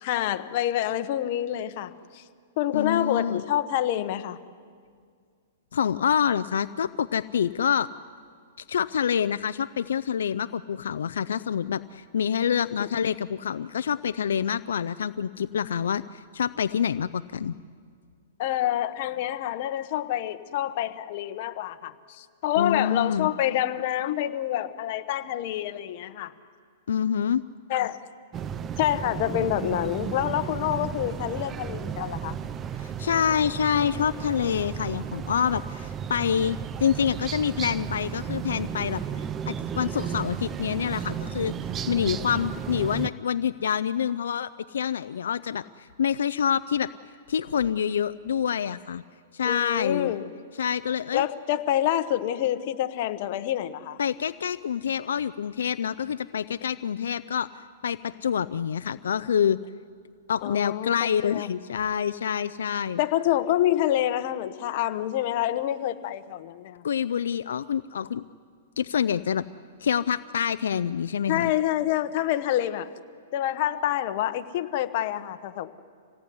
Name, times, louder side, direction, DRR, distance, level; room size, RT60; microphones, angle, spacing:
voice 1, 0.0-2.2 2.6-4.4 12.8-12.9 18.4-26.3 27.7-28.0 28.8-32.4 49.4-50.3 51.1-54.0 60.4-61.5 63.0-66.8 71.3-72.9 73.3-75.7, left 12 dB, 50° left, 9 dB, 1.3 m, -27 dB
voice 2, 2.7-3.4 5.7-7.9 8.7-17.5 22.6-23.3 26.9-27.4 32.8-39.0 39.5-41.5 41.9-46.9 47.3-49.0 49.3-50.1 50.6-51.3 54.0-59.6 60.3-63.0 66.8-68.2 68.8-69.4 69.8-71.5, left 8 dB, 85° left, 13 dB, 0.6 m, -27 dB
sound 1, 28.3-43.1, right 8 dB, 20° right, 0.6 m, -34 dB
26.5 x 17.5 x 9.7 m, 2.1 s
hypercardioid pair, 145°, 0 cm